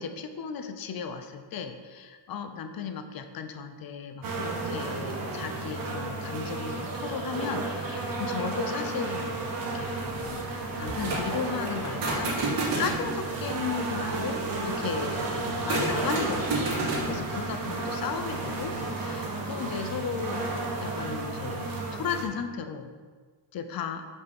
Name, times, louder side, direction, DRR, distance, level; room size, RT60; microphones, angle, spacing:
voice 1, 0.0-9.4 9.7-10.5 10.8-20.4 20.8-22.9 23.5-24.1, left 6 dB, 55° left, 8 dB, 0.7 m, -35 dB
sound 1, 4.2-22.2, right 3 dB, 50° right, 1.4 m, -33 dB
sound 2, 10.0-18.8, right 2 dB, 75° right, 2.5 m, -33 dB
6.5 x 5.6 x 5.3 m, 1.5 s
cardioid pair, 160°, 44 cm